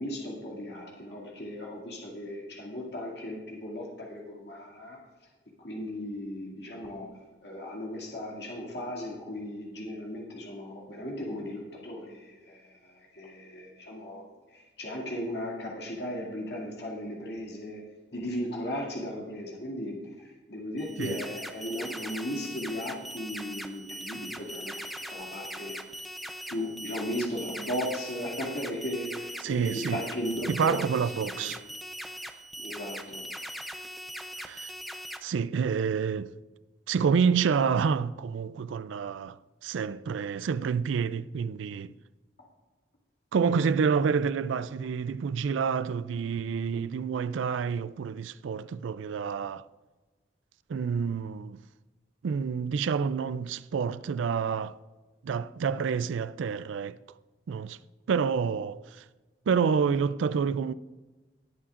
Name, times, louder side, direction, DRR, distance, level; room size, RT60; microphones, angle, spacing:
voice 1, 0.0-5.0 5.6-7.1 7.4-14.2 14.5-17.8 18.1-25.8 26.5-30.8 31.4-31.5 32.6-33.3, left 1 dB, 60° left, 2.3 m, -36 dB
sound 1, 20.8-35.2, equal, ahead, 0.5 m, -40 dB
voice 2, 29.4-30.0 30.5-31.6 34.4-34.7 35.2-36.3 36.9-39.4 39.6-41.9 43.3-49.6 50.7-51.6 52.2-54.8 55.2-57.0 57.5-57.8 58.1-58.8 59.5-60.7, right 6 dB, 85° right, 0.4 m, -28 dB
19.0 x 8.5 x 2.5 m
head